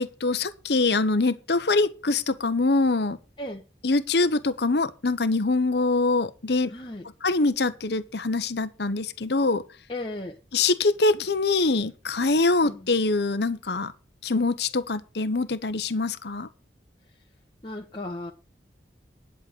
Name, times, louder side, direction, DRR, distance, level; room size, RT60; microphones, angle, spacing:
voice 1, 0.0-3.2 3.8-6.7 7.2-9.6 10.5-13.9 14.2-16.5, left 3 dB, 65° left, 1.0 m, -24 dB
voice 2, 6.7-7.1 9.9-10.4 12.6-12.9 17.6-18.3, left 1 dB, 30° left, 1.2 m, -35 dB
11.0 x 6.7 x 6.3 m
head